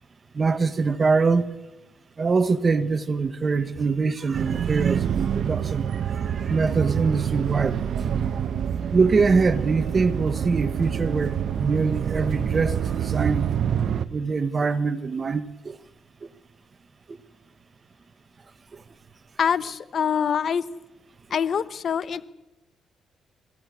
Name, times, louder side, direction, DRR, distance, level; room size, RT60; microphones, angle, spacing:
voice 1, 0.3-1.5 2.2-8.1 8.9-13.4 14.1-15.8 16.2-16.3 17.1-17.2, right 4 dB, 35° right, 1.6 m, -24 dB
sound 1, 4.3-14.1, right 8 dB, 65° right, 1.1 m, -26 dB
voice 2, 19.4-20.6 21.3-22.2, left 7 dB, 55° left, 1.1 m, -24 dB
27.0 x 16.5 x 8.6 m
cardioid pair, 90°, 0 cm